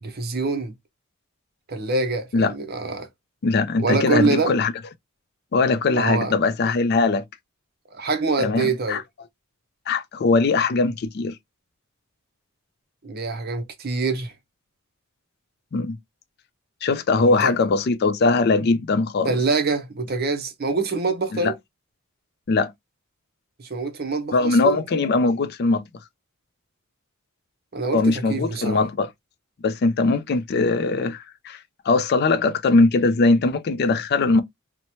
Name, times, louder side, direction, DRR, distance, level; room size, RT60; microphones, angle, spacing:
voice 1, 0.0-0.7 1.7-3.1 3.8-4.6 5.9-6.3 7.9-9.0 13.0-14.3 17.2-17.5 19.2-21.5 23.6-24.8 27.7-28.8, right 3 dB, 50° right, 0.6 m, -25 dB
voice 2, 3.4-4.7 5.5-7.2 8.4-9.0 9.9-11.3 15.7-16.0 16.8-19.3 21.3-21.5 22.5-22.7 24.3-25.8 27.9-29.1 29.6-31.6 31.9-34.4, left 3 dB, 50° left, 0.4 m, -20 dB
3.0 x 2.1 x 2.7 m
head